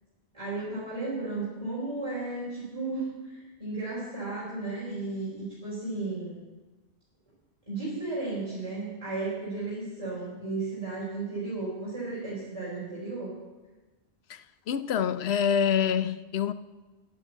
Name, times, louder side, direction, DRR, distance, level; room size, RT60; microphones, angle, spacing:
voice 1, 0.3-6.4 7.7-13.3, right 3 dB, 30° right, 4.5 m, -34 dB
voice 2, 14.3-16.5, left 8 dB, 80° left, 0.9 m, -26 dB
12.0 x 10.5 x 7.4 m
omnidirectional pair, 1.1 m